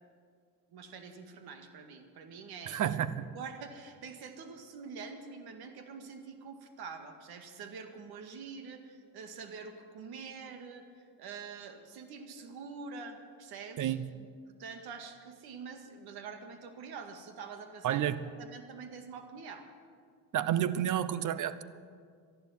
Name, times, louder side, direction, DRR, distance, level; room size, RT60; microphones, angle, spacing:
voice 1, 0.7-3.0 3.3-14.0 14.5-18.1 18.4-19.7, right 5 dB, 65° right, 7 dB, 2.1 m, -46 dB
voice 2, 2.7-3.2 13.8-14.1 17.8-18.2 20.3-21.6, right 10 dB, 45° right, 16 dB, 0.9 m, -30 dB
13.0 x 11.5 x 9.4 m, 2.1 s
supercardioid pair, 85°, 41 cm